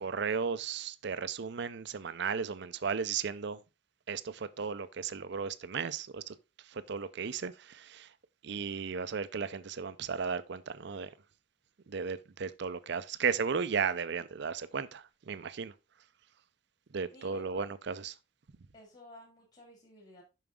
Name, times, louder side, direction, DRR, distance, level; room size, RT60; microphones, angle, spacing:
voice 1, 0.0-3.6 4.1-6.2 6.9-7.5 7.9-8.1 8.4-11.1 11.9-15.7 16.9-18.1, right 6 dB, 60° right, 0.5 m, -35 dB
voice 2, 17.1-17.7 18.7-20.2, left 1 dB, 40° left, 2.1 m, -53 dB
7.1 x 5.9 x 3.6 m
head